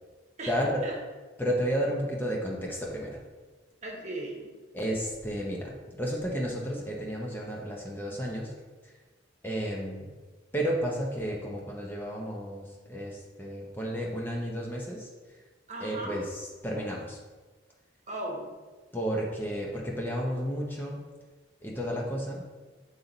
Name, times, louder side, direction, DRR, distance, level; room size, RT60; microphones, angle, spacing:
voice 1, 0.5-0.8 1.4-3.2 4.7-8.5 8.8-8.9 9.4-10.1 10.5-15.1 15.8-17.2 18.9-21.0 21.6-22.4, equal, 10° left, -2 dB, 0.8 m, -32 dB
voice 2, 3.8-4.5 15.7-16.2 18.1-18.5, right 1 dB, 40° right, -1 dB, 1.2 m, -37 dB
7.6 x 3.9 x 4.0 m, 1.3 s
head